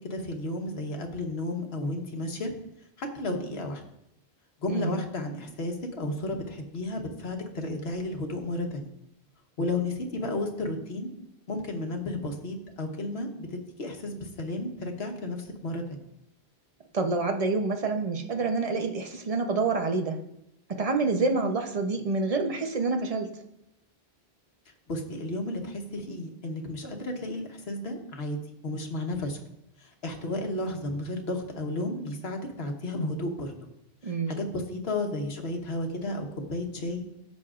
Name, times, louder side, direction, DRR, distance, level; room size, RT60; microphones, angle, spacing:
voice 1, 0.0-2.5 3.0-3.8 4.6-8.9 9.6-11.1 11.5-16.0 21.3-21.5 24.9-28.4 28.6-29.4 29.8-33.5 34.0-37.0, left 1 dB, 75° left, 3 dB, 1.4 m, -33 dB
voice 2, 16.9-20.2 20.7-23.3 34.0-34.3, right 3 dB, 40° right, 4 dB, 0.8 m, -27 dB
13.5 x 6.3 x 2.4 m, 0.82 s
omnidirectional pair, 1.1 m